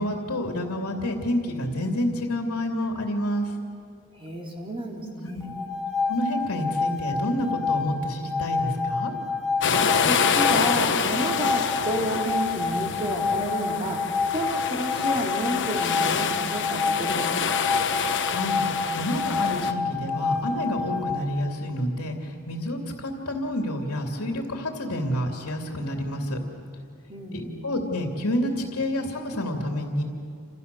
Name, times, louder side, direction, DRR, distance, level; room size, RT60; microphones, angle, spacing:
voice 1, 0.0-3.5 5.3-5.5 6.0-9.1 18.2-18.6 18.9-26.4 27.3-30.0, left 1 dB, 80° left, 2 dB, 2.7 m, -29 dB
voice 2, 4.1-5.7 10.0-14.0 14.3-17.7 27.1-27.7, equal, 25° right, 0 dB, 3.4 m, -31 dB
sound 1, 5.4-21.2, left 4 dB, 5° right, 2.5 m, -29 dB
sound 2, 9.6-19.7, left 6 dB, 55° left, 1.2 m, -27 dB
29.0 x 27.5 x 6.9 m, 2.4 s
head